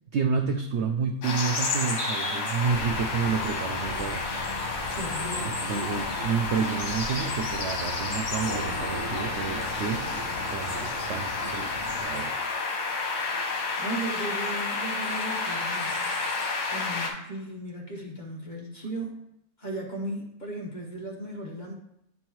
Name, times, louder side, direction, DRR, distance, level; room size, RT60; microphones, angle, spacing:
voice 1, 0.1-4.2 5.4-10.1 10.5-12.4, right 6 dB, 75° right, 5 dB, 0.6 m, -30 dB
sound 1, 1.2-17.1, left 3 dB, 75° left, 1.7 m, -31 dB
sound 2, 2.6-12.0, equal, 50° right, 1.7 m, -39 dB
voice 2, 4.9-5.7 13.8-16.3 16.7-19.2 19.6-21.7, right 1 dB, 35° left, -1 dB, 0.9 m, -36 dB
sound 3, 8.4-12.5, equal, 30° right, 1.6 m, -42 dB
9.5 x 4.2 x 3.0 m, 0.80 s
omnidirectional pair, 1.7 m